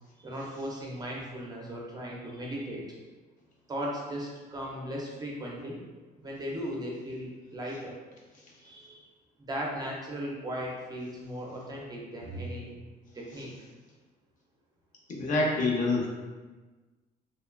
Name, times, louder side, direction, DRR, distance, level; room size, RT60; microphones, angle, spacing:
voice 1, 0.2-2.8 3.7-5.8 6.2-8.0 8.6-9.0 9.4-12.7 13.1-13.5, equal, 25° right, -3 dB, 0.5 m, -37 dB
voice 2, 15.1-16.1, left 2 dB, 50° left, -2 dB, 0.6 m, -27 dB
3.0 x 2.2 x 2.2 m, 1.3 s
cardioid pair, 110°, 17 cm